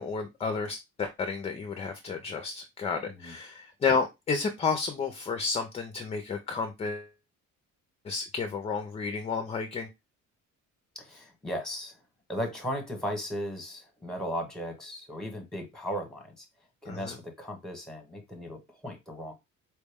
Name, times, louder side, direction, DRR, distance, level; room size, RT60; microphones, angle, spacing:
voice 1, 0.0-7.1 8.0-9.9 16.9-17.2, left 5 dB, 20° left, 0.4 m, -31 dB
voice 2, 10.9-12.0 12.3-16.4 16.8-19.3, equal, ahead, 0.9 m, -36 dB
4.4 x 2.1 x 3.4 m
cardioid pair, 160°, 31 cm